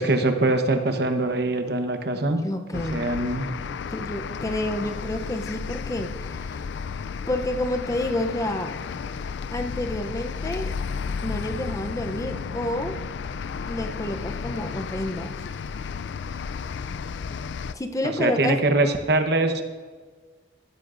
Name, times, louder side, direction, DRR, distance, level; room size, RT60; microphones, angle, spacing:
voice 1, 0.0-2.4 2.7-3.5 18.0-19.6, right 2 dB, 60° right, 7 dB, 1.0 m, -23 dB
voice 2, 2.4-3.1 3.9-6.4 7.3-8.8 9.5-10.8 11.2-13.0 13.7-15.4 17.7-18.6, left 1 dB, 20° left, 6 dB, 0.6 m, -29 dB
sound 1, 2.7-17.7, left 5 dB, 70° left, 0.4 m, -33 dB
15.5 x 12.5 x 2.6 m, 1.5 s
head